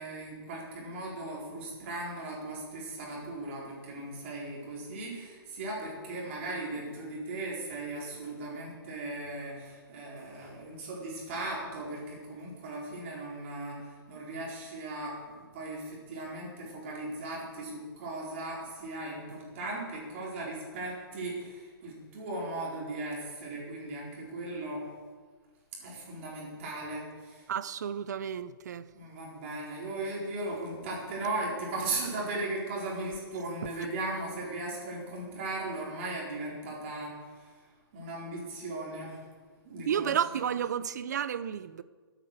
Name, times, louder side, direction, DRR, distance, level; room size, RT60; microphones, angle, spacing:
voice 1, 0.0-24.9 25.8-27.4 28.9-37.5 37.9-39.2 39.6-40.5, right 2 dB, 30° right, 4.3 m, -37 dB
voice 2, 27.5-28.8 39.9-41.8, right 8 dB, 45° right, 0.6 m, -31 dB
16.5 x 9.2 x 6.6 m
hypercardioid pair, 175°, 13 cm